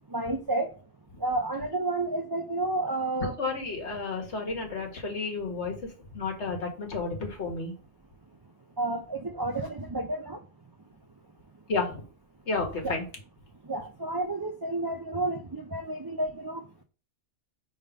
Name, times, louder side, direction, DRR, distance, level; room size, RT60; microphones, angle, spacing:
voice 1, 0.1-0.7 1.2-3.4 8.8-10.4 12.8-12.9 13.7-16.6, right 2 dB, 35° right, 0.3 m, -30 dB
voice 2, 3.2-7.7 11.7-12.0 12.5-13.1, left 3 dB, 70° left, 1.7 m, -32 dB
4.9 x 3.8 x 5.1 m
omnidirectional pair, 1.2 m